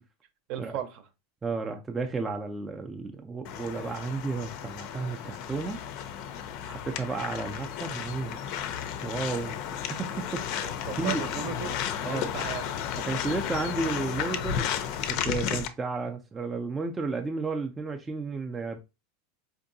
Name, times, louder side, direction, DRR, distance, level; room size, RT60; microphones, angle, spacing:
voice 1, 0.5-1.0 10.6-11.8 12.1-12.7, right 9 dB, 50° right, 0.7 m, -36 dB
voice 2, 1.4-5.8 6.6-8.4 9.0-11.3 12.0-12.3 13.0-14.8 15.1-18.8, right 4 dB, 10° right, 0.4 m, -33 dB
sound 1, 3.4-15.7, left 9 dB, 50° left, 0.5 m, -33 dB
4.5 x 2.6 x 2.6 m
supercardioid pair, 150°, 0 cm